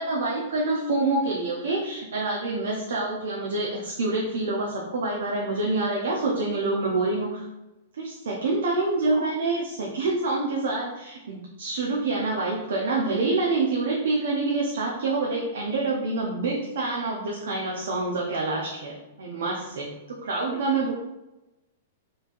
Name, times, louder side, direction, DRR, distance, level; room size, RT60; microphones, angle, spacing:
voice 1, 0.0-7.5 8.0-20.9, right 3 dB, 80° right, -2 dB, 0.7 m, -27 dB
4.3 x 3.2 x 2.6 m, 1.0 s
hypercardioid pair, 145°, 0 cm